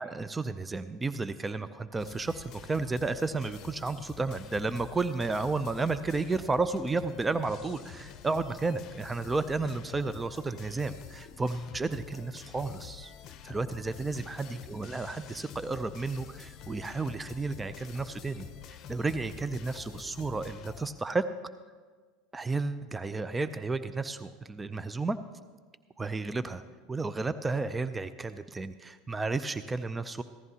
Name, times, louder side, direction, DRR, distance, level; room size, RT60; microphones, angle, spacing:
voice 1, 0.0-13.1 13.4-21.3 22.3-25.2 26.0-26.6 26.9-30.2, right 3 dB, 15° right, 13 dB, 0.5 m, -32 dB
sound 1, 2.0-20.9, left 9 dB, 50° left, 0.7 m, -47 dB
15.5 x 14.0 x 2.8 m, 1.5 s
hypercardioid pair, 85°, 0 cm